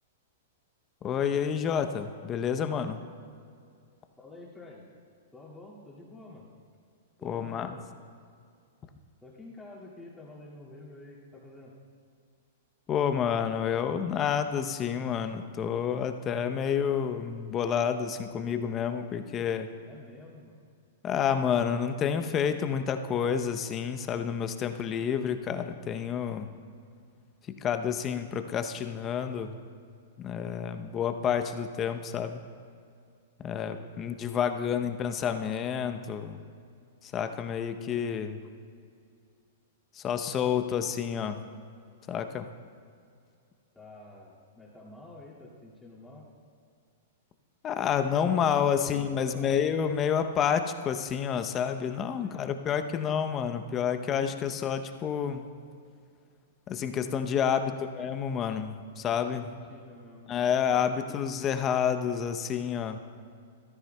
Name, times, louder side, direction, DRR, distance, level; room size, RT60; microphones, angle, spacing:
voice 1, 1.0-3.0 7.2-7.8 12.9-19.7 21.0-26.5 27.6-29.5 30.2-32.4 33.4-36.4 37.0-38.4 39.9-41.4 42.1-42.5 47.6-55.5 56.7-59.5 60.3-63.0, left 8 dB, 25° left, 8 dB, 0.6 m, -29 dB
voice 2, 4.2-4.9 5.3-6.5 7.2-7.9 9.2-11.8 19.8-20.5 33.7-34.2 43.7-46.3 48.2-49.6 52.2-52.5 57.5-57.8 59.4-61.2, left 2 dB, 10° left, -6 dB, 2.1 m, -49 dB
14.5 x 12.5 x 2.2 m, 2.3 s
hypercardioid pair, 130°, 0 cm